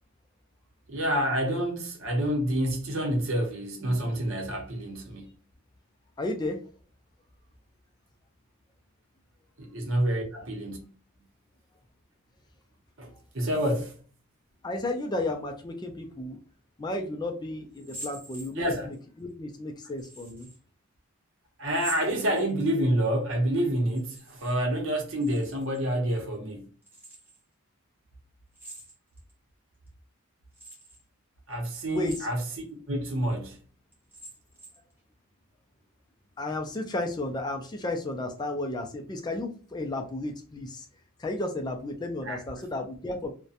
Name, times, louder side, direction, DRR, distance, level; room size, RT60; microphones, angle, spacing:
voice 1, 0.9-5.3 9.6-10.8 13.0-14.0 18.6-18.9 21.6-26.7 31.5-33.6 42.2-42.4, right 1 dB, 60° right, 0.7 m, -28 dB
voice 2, 6.2-6.6 14.6-16.4 16.8-20.5 31.9-32.3 36.4-40.9 41.2-43.3, left 2 dB, 20° left, 0.3 m, -33 dB
sound 1, 17.7-19.0 20.0-20.6 21.6-22.8 23.8-24.6 24.8-25.8 26.8-27.4 28.5-29.3 29.9-30.0 30.5-31.0 31.9-32.6 33.1-33.2 33.9-34.9, right 1 dB, 10° right, 0.7 m, -45 dB
2.7 x 2.1 x 2.4 m
head